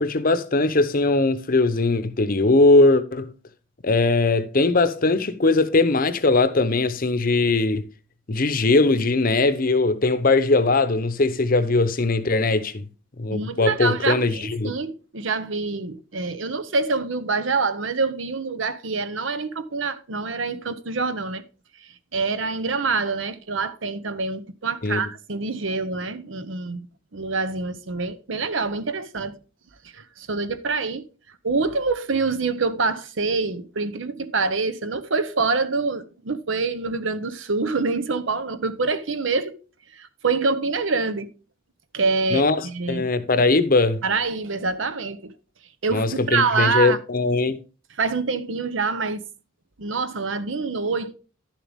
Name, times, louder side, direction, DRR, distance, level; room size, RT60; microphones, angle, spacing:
voice 1, 0.0-3.3 3.8-7.8 8.3-12.9 13.2-14.7 24.8-25.0 42.3-44.0 45.9-47.6, left 3 dB, 45° left, 0.8 m, -20 dB
voice 2, 13.3-21.4 21.8-26.9 27.1-29.4 29.9-31.0 31.4-39.6 39.9-41.3 41.9-43.1 44.0-45.3 45.8-47.0 47.9-49.2 49.8-51.1, right 4 dB, 75° right, 0.9 m, -26 dB
11.5 x 7.4 x 3.6 m
head